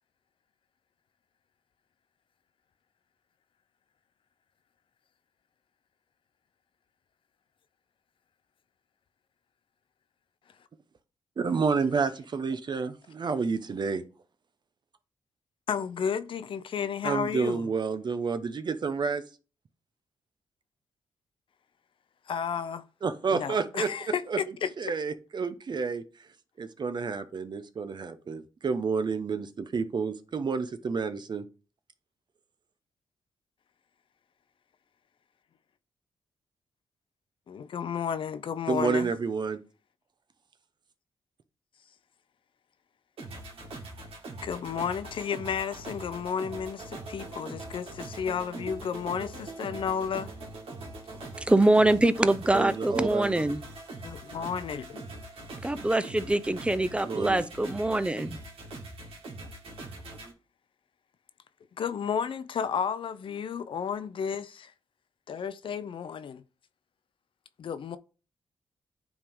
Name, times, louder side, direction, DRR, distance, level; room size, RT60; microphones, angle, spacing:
voice 1, 11.4-14.0 17.0-19.2 23.0-23.9 24.3-24.4 24.8-26.0 26.6-31.4 38.7-39.6 52.5-53.4 57.0-57.4, right 5 dB, 50° right, 0.8 m, -29 dB
voice 2, 15.7-17.7 22.3-22.8 23.3-24.7 37.5-39.1 44.4-50.3 54.0-55.1 61.8-64.7 65.3-66.4 67.6-68.0, left 7 dB, 65° left, 0.6 m, -32 dB
sound 1, 43.2-60.3, right 2 dB, 80° right, 2.0 m, -42 dB
voice 3, 51.5-53.6 55.6-58.4, right 1 dB, 10° right, 0.7 m, -24 dB
9.5 x 3.6 x 3.6 m
cardioid pair, 65°, 10 cm